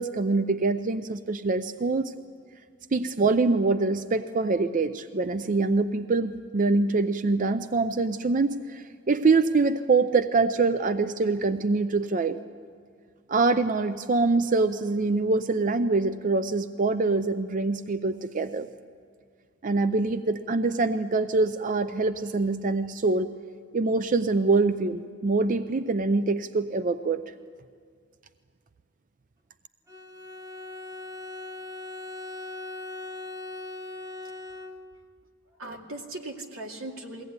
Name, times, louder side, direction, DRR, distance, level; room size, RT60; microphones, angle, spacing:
voice 1, 0.0-2.1 2.9-12.4 13.3-18.7 19.6-23.3 23.7-27.2, right 3 dB, 40° right, 11 dB, 0.5 m, -24 dB
Bowed string instrument, 29.9-35.1, left 2 dB, 15° right, 1.0 m, -39 dB
voice 2, 34.2-34.6 35.5-37.2, right 2 dB, 90° right, 1 dB, 2.5 m, -39 dB
22.5 x 16.5 x 9.5 m, 2.1 s
head